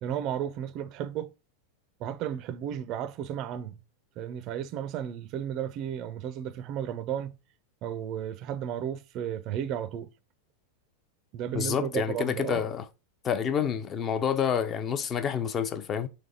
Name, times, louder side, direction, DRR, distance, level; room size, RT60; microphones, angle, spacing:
voice 1, 0.0-1.3 2.0-3.8 4.2-7.4 7.8-10.1 11.3-12.7, right 9 dB, 40° right, 0.4 m, -33 dB
voice 2, 11.5-12.8 13.2-16.1, left 8 dB, 25° left, 0.5 m, -28 dB
3.4 x 3.2 x 3.9 m
figure-of-eight pair, 90°, 0 cm